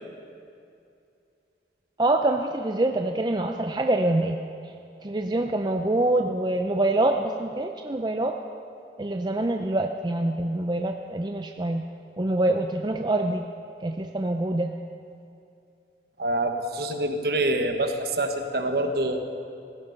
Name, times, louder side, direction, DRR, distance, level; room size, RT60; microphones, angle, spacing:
voice 1, 2.0-4.4 5.0-8.4 9.0-11.8 12.2-13.4 13.8-14.7, right 2 dB, 25° right, 4 dB, 0.5 m, -25 dB
voice 2, 16.2-19.2, right 1 dB, 60° right, 5 dB, 1.3 m, -26 dB
17.0 x 15.0 x 5.4 m, 2.6 s
head